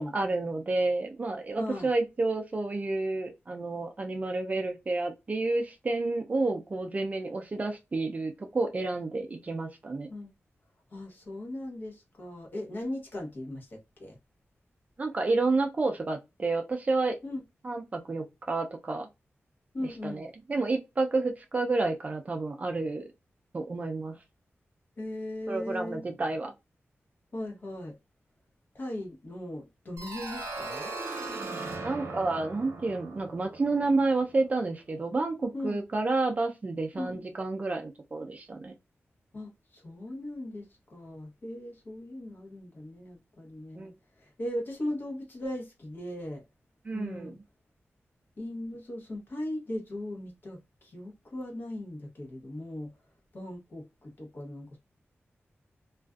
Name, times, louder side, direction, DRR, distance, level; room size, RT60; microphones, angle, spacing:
voice 1, 0.0-10.1 15.0-17.2 17.6-19.1 20.0-23.1 23.5-24.2 25.5-26.5 31.8-38.7 43.8-43.9 46.8-47.3, right 3 dB, 35° right, 0.4 m, -30 dB
voice 2, 1.6-1.9 10.1-10.3 10.9-14.2 17.2-17.4 19.7-20.2 25.0-26.0 27.3-27.9 28.7-30.9 33.2-33.3 35.5-35.8 36.9-37.2 39.3-43.9 44.2-46.4 46.9-47.4 48.4-52.9 53.3-54.8, left 1 dB, 45° left, 0.9 m, -38 dB
sound 1, 30.0-34.6, right 3 dB, 80° right, 0.7 m, -39 dB
2.4 x 2.3 x 2.3 m
wide cardioid pair, 150°, 5 cm